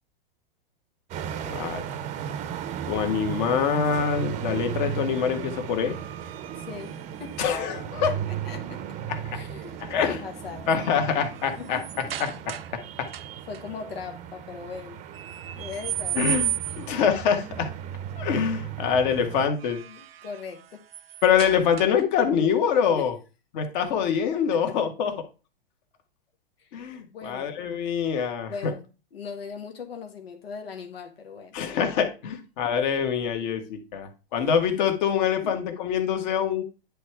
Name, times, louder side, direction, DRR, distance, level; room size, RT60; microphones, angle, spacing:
sound 1, 1.1-19.5, right 9 dB, 25° right, 0.7 m, -36 dB
voice 1, 1.4-1.9 2.9-6.0 7.4-8.1 9.1-9.4 9.8-10.2 10.7-13.1 16.1-17.7 18.2-19.8 21.2-23.2 23.5-25.2 26.7-28.7 31.5-36.6, left 7 dB, 50° left, 1.7 m, -25 dB
sound 2, 4.9-7.8 9.6-10.0 10.4-12.8 13.1-13.6 15.1-17.0 19.3-22.2, right 11 dB, 80° right, 0.7 m, -36 dB
voice 2, 6.6-7.5 7.8-8.8 9.3-10.7 11.6-11.8 13.5-15.0 15.6-16.3 18.8-18.9 19.9-20.8 22.9-23.1 24.5-24.6 26.6-26.7 27.1-27.6 28.5-28.9 29.1-31.6 35.4-35.6, left 5 dB, 80° left, 1.4 m, -39 dB
10.0 x 3.5 x 4.6 m
hypercardioid pair, 125°, 29 cm